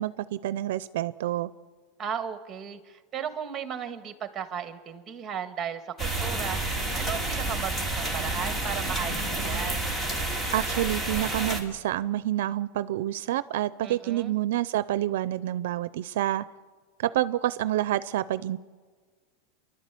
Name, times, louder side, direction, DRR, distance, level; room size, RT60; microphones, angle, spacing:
voice 1, 0.0-1.5 10.5-16.5 17.0-18.6, right 13 dB, 75° right, 15 dB, 0.5 m, -28 dB
voice 2, 2.0-6.6 6.9-9.8 13.8-14.3, right 8 dB, 20° right, 9 dB, 1.7 m, -35 dB
sound 1, 6.0-11.6, right 2 dB, 10° left, 2.5 m, -29 dB
29.0 x 12.0 x 8.4 m, 1.5 s
supercardioid pair, 155°, 0 cm